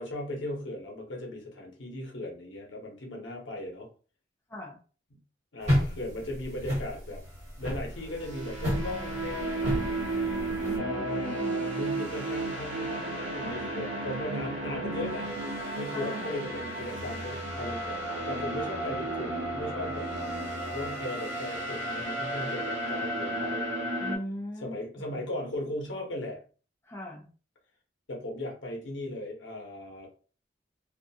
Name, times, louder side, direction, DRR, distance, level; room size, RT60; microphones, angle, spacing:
voice 1, 0.0-3.9 5.5-7.2 7.6-10.0 10.8-20.1 20.7-23.6 24.6-26.4 28.1-30.1, left 1 dB, 85° left, 0 dB, 0.8 m, -37 dB
sound 1, 5.6-10.8, equal, 35° right, 1.3 m, -31 dB
sound 2, 7.9-24.2, right 2 dB, 80° right, 0.6 m, -33 dB
voice 2, 10.6-11.7 15.9-16.5 24.0-25.2 26.8-27.3, equal, 15° left, -1 dB, 0.4 m, -40 dB
2.4 x 2.3 x 2.7 m, 0.38 s
head